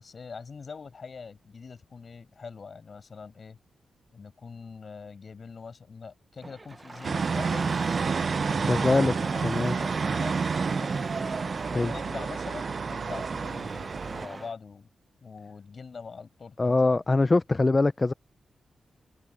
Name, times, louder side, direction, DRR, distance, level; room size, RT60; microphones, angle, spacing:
voice 1, 0.0-3.6 4.1-8.1 8.5-11.3 11.7-14.9 15.2-17.0, left 5 dB, 55° left, 6.4 m, -43 dB
Engine starting, 6.4-14.5, right 3 dB, 30° right, 0.9 m, -39 dB
sound 1, 7.0-14.3, right 5 dB, 55° right, 0.6 m, -29 dB
voice 2, 8.4-9.1 9.4-9.7 11.7-11.9 16.6-18.1, left 3 dB, 30° left, 0.5 m, -23 dB
cardioid pair, 80°, 0 cm